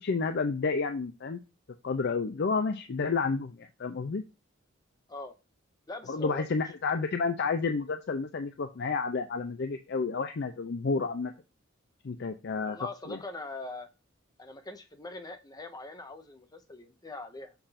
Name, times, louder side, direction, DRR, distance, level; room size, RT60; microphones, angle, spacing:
voice 1, 0.0-1.4 1.8-4.2 6.1-11.3 12.0-12.8 13.1-13.2, left 4 dB, 55° left, 8 dB, 0.5 m, -30 dB
voice 2, 5.9-6.5 6.9-7.0 12.6-13.9 14.4-17.5, left 2 dB, 20° left, 7 dB, 0.8 m, -42 dB
6.9 x 2.6 x 5.6 m, 0.28 s
head